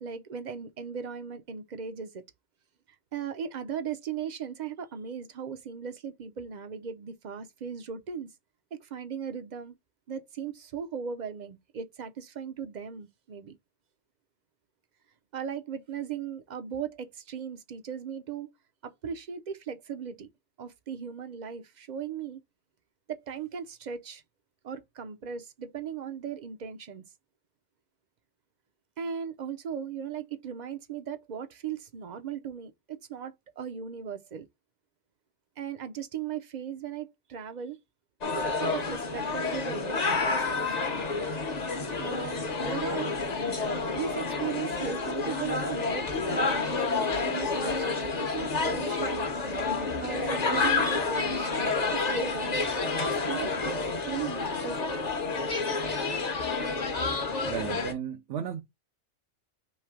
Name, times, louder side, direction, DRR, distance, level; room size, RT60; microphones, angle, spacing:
voice 1, 0.0-2.2 3.1-8.3 8.7-9.7 10.1-13.6 15.3-18.5 18.8-20.3 20.6-22.4 23.1-24.2 24.6-27.0 29.0-34.5 35.6-37.8 38.3-40.8 42.0-43.2 43.9-49.3 50.0-52.6 53.0-55.0 55.8-55.9, right 7 dB, 50° right, 0.6 m, -37 dB
sound 1, 38.2-57.9, left 4 dB, 40° left, 0.8 m, -29 dB
voice 2, 57.5-58.6, right 9 dB, 85° right, 1.0 m, -34 dB
3.2 x 3.2 x 4.8 m
omnidirectional pair, 1.2 m